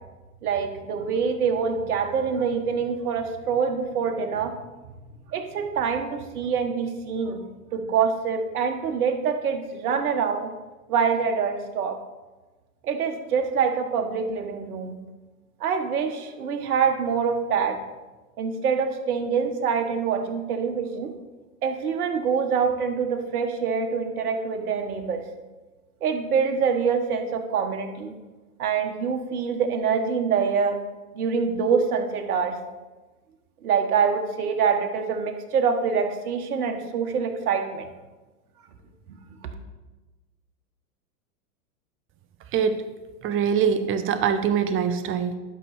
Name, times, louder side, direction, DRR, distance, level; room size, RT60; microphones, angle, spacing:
voice 1, 0.4-4.5 5.3-7.5 7.7-10.5 10.9-12.0 12.8-15.0 15.6-17.8 18.4-21.1 21.6-25.2 26.0-28.1 28.6-30.8 31.1-32.6 33.6-37.9, right 6 dB, 65° right, 5 dB, 1.5 m, -25 dB
voice 2, 43.2-45.3, right 7 dB, 25° right, 10 dB, 0.8 m, -23 dB
12.0 x 6.1 x 4.3 m, 1.2 s
hypercardioid pair, 105°, 47 cm